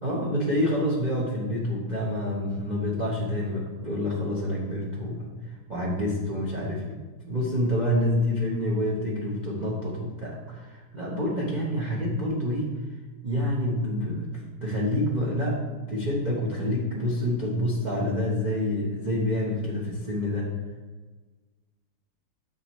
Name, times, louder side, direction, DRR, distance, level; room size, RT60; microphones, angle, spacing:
voice 1, 0.0-5.3 5.7-7.0 7.3-12.7 13.2-20.5, left 1 dB, 45° right, -3 dB, 0.6 m, -27 dB
7.2 x 6.8 x 3.1 m, 1.3 s
omnidirectional pair, 2.3 m